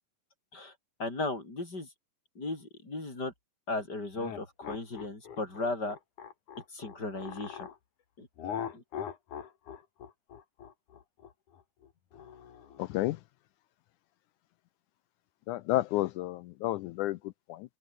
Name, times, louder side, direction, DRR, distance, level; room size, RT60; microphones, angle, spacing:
voice 1, 1.0-1.9 2.3-3.3 3.7-6.0 6.7-7.7 8.2-8.3 8.6-8.8, left 2 dB, 25° left, 6.8 m, -36 dB
sound 1, 4.1-7.8 8.4-12.9, left 8 dB, 65° left, 3.7 m, -42 dB
voice 2, 15.5-17.2 17.5-17.6, left 17 dB, 80° left, 1.8 m, -30 dB
open air
omnidirectional pair, 3.9 m